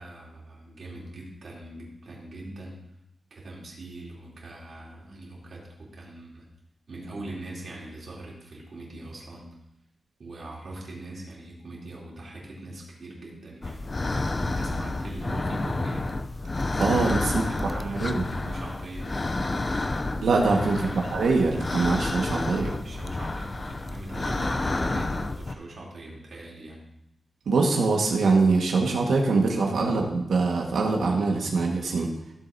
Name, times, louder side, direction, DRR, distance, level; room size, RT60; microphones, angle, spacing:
voice 1, 0.0-2.8 3.3-6.5 6.9-9.5 10.2-13.8 14.4-16.1 17.2-19.1 20.8-21.1 22.8-26.8, right 2 dB, 50° right, -4 dB, 3.2 m, -41 dB
sound 1, 13.6-25.5, left 2 dB, 25° left, 0.5 m, -30 dB
voice 2, 16.8-17.4 17.8-18.2 20.2-22.8 27.5-32.1, right 3 dB, 80° right, 0 dB, 1.6 m, -23 dB
15.5 x 7.6 x 2.7 m, 0.86 s
wide cardioid pair, 160°, 0 cm